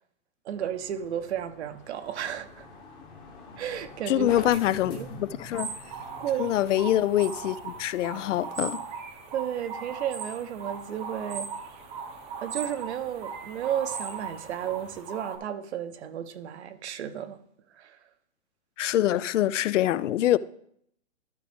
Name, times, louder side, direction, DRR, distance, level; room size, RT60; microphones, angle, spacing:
voice 1, 0.4-2.7 3.6-4.6 4.9-5.1 6.2-6.5 9.3-11.5 12.4-17.4 17.7-18.0, right 10 dB, 60° right, 0.8 m, -33 dB
sound 1, 0.6-15.0, left 3 dB, 15° left, 0.9 m, -48 dB
voice 2, 4.1-5.7 6.4-8.8 18.8-20.4, left 12 dB, 80° left, 0.5 m, -25 dB
sound 2, 5.5-15.4, right 6 dB, 15° right, 0.6 m, -38 dB
12.5 x 5.1 x 3.4 m
hypercardioid pair, 155°, 36 cm